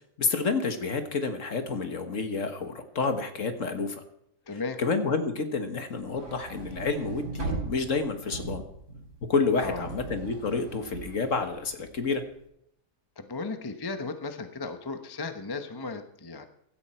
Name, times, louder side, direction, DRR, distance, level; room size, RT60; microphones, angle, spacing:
voice 1, 0.2-4.0 4.5-8.6 9.3-12.2, left 4 dB, 50° left, 7 dB, 1.7 m, -29 dB
voice 2, 4.5-4.8 9.6-9.9 13.2-16.5, left 3 dB, 20° left, 8 dB, 0.8 m, -35 dB
sound 1, 6.0-12.3, right 3 dB, 75° right, 5.2 m, -39 dB
16.5 x 13.0 x 4.4 m, 0.75 s
omnidirectional pair, 1.8 m